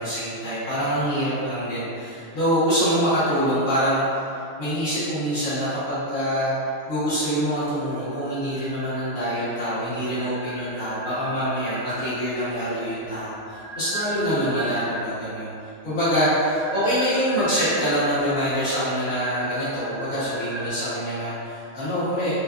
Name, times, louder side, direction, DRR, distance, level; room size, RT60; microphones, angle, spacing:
voice 1, 0.0-4.2 4.6-6.5 6.9-15.5 15.8-22.3, equal, 65° left, -14 dB, 1.7 m, -25 dB
sound 1, 7.7-9.5 9.9-12.4 13.1-15.2 16.2-20.7, right 1 dB, 55° right, 1.0 m, -37 dB
4.8 x 2.3 x 2.5 m, 2.5 s
omnidirectional pair, 1.5 m